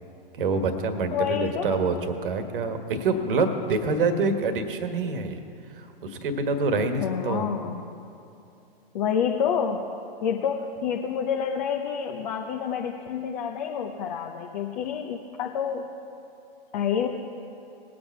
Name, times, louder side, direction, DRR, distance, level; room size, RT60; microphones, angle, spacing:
voice 1, 0.3-2.0 2.2-5.4 5.7-7.5, right 3 dB, 60° right, 7 dB, 1.4 m, -26 dB
voice 2, 1.1-1.8 7.0-7.7 8.9-9.9 10.2-15.9 16.7-17.1, left 7 dB, 45° left, 2 dB, 0.9 m, -28 dB
20.0 x 7.8 x 4.6 m, 2.7 s
figure-of-eight pair, 115°, 30 cm